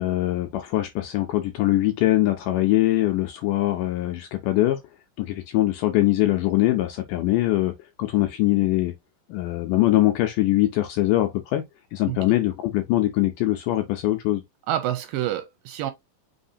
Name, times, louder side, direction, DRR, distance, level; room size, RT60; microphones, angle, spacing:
voice 1, 0.0-4.8 5.2-7.7 8.0-8.9 9.3-11.7 11.9-14.4, left 16 dB, 80° left, 1.9 m, -22 dB
voice 2, 14.7-15.9, right 12 dB, 80° right, 2.1 m, -27 dB
5.6 x 3.2 x 2.6 m
omnidirectional pair, 4.3 m